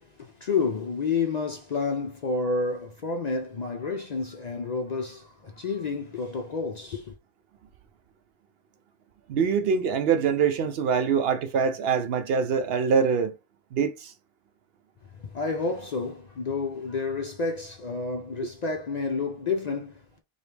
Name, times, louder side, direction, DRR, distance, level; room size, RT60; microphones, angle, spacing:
voice 1, 0.0-7.1 15.1-20.2, left 4 dB, 50° left, 0.6 m, -30 dB
voice 2, 9.3-13.3 13.7-14.1, right 6 dB, 75° right, 0.8 m, -24 dB
4.9 x 2.4 x 3.3 m
omnidirectional pair, 1.0 m